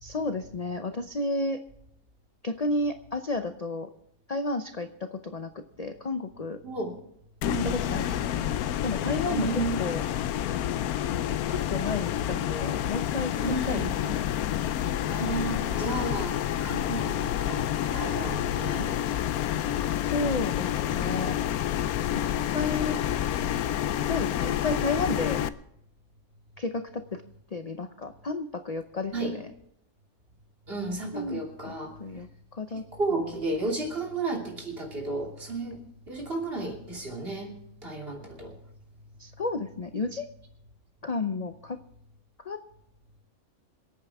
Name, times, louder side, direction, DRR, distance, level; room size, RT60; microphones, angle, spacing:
voice 1, 0.0-1.6 2.4-3.9 4.3-6.6 7.6-8.5 8.8-10.0 11.5-14.2 20.1-21.4 22.1-22.2 22.5-23.0 24.1-25.4 26.6-27.2 27.5-29.4 31.1-31.7 32.0-32.8 33.1-33.2 39.2-40.3 41.0-41.8 42.4-42.6, left 3 dB, 40° left, 7 dB, 0.6 m, -32 dB
voice 2, 6.6-7.0 7.4-7.7 9.3-9.9 13.4-13.9 15.1-19.0 19.3-19.8 22.1-22.5 29.1-29.4 30.7-32.2 32.9-38.6, right 3 dB, 40° right, 0 dB, 3.1 m, -33 dB
sound 1, 7.4-25.5, left 11 dB, 85° left, 1.1 m, -29 dB
26.5 x 8.9 x 3.5 m, 0.75 s
omnidirectional pair, 1.5 m